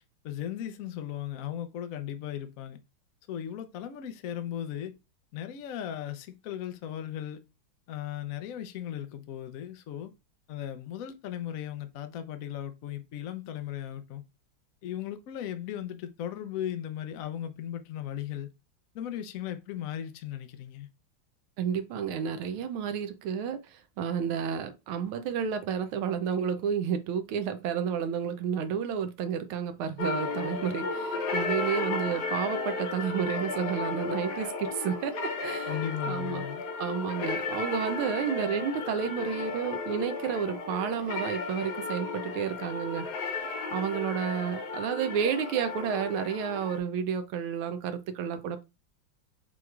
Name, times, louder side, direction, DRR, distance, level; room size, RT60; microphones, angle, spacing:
voice 1, 0.2-2.8 3.3-4.9 5.3-7.4 7.9-10.1 10.5-14.2 14.8-18.5 18.9-20.9 35.7-36.6, left 10 dB, 75° left, 0.7 m, -37 dB
voice 2, 21.6-23.6 24.0-35.8 36.1-36.4 36.8-43.0 43.7-48.6, right 7 dB, 90° right, 1.5 m, -31 dB
sound 1, 30.0-46.8, left 3 dB, 60° left, 1.2 m, -34 dB
6.0 x 3.1 x 2.4 m
omnidirectional pair, 2.3 m